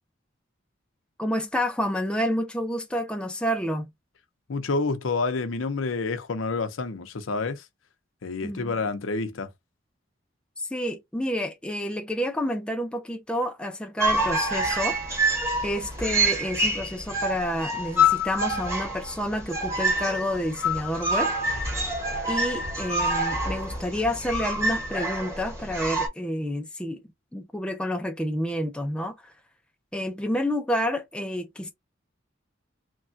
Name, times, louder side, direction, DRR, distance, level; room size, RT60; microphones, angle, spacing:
voice 1, 1.2-3.9 8.4-8.7 10.6-15.0 15.6-21.3 22.3-27.0 27.3-29.3 29.9-31.7, equal, 5° left, 0.4 m, -29 dB
voice 2, 4.5-7.7 8.2-9.5, left 3 dB, 90° left, 0.6 m, -28 dB
sound 1, 14.0-26.1, equal, 15° right, 1.0 m, -27 dB
3.2 x 2.2 x 2.5 m
head